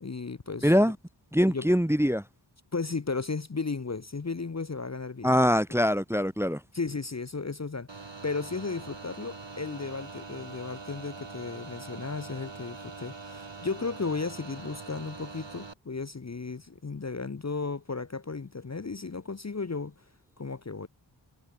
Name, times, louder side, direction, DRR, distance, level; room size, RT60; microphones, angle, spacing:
voice 1, 0.0-0.7 1.5-1.7 2.7-5.4 6.7-19.9 20.4-20.9, left 4 dB, 35° left, 0.8 m, -34 dB
voice 2, 0.6-1.0 1.3-2.2 5.2-6.6, equal, 5° right, 0.9 m, -23 dB
sound 1, 7.9-15.7, right 4 dB, 65° right, 3.2 m, -43 dB
wide cardioid pair, 45°, 47 cm